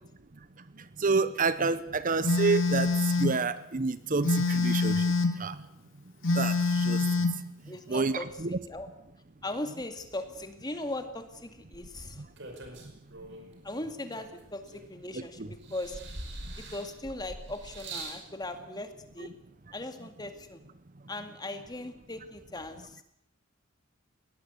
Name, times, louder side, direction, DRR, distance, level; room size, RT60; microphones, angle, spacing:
voice 1, 1.0-2.9 3.2-5.0 5.4-5.6 6.4-7.0 7.9-8.6 15.4-15.5, right 4 dB, 40° right, 14 dB, 0.8 m, -28 dB
Telephone, 2.2-3.4 4.2-5.4 6.2-7.4, left 3 dB, 75° left, 2.3 m, -26 dB
voice 2, 7.7-8.9 9.4-12.2 13.6-16.0 16.7-19.4 19.7-20.6 21.1-23.0, left 2 dB, 20° left, 7 dB, 2.2 m, -39 dB
sound 1, 11.7-13.5 14.1-15.2 15.6-18.2 19.1-19.2, right 2 dB, 60° right, 5.3 m, -43 dB
21.5 x 18.5 x 8.2 m, 0.77 s
head